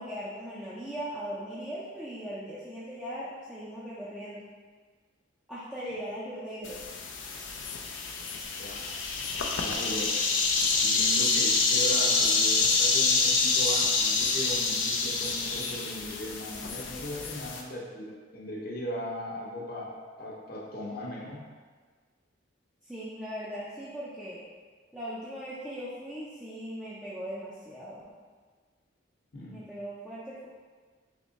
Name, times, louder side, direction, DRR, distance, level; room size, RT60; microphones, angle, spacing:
voice 1, 0.0-4.4 5.5-6.8 22.9-24.4 24.9-28.0 29.5-30.5, equal, 5° right, -10 dB, 0.5 m, -39 dB
sound 1, 6.6-17.6, left 4 dB, 80° left, 0.5 m, -27 dB
voice 2, 8.6-8.9 9.4-10.2 10.8-21.4 29.3-29.6, equal, 50° left, -4 dB, 0.8 m, -38 dB
3.6 x 3.0 x 3.9 m, 1.5 s
head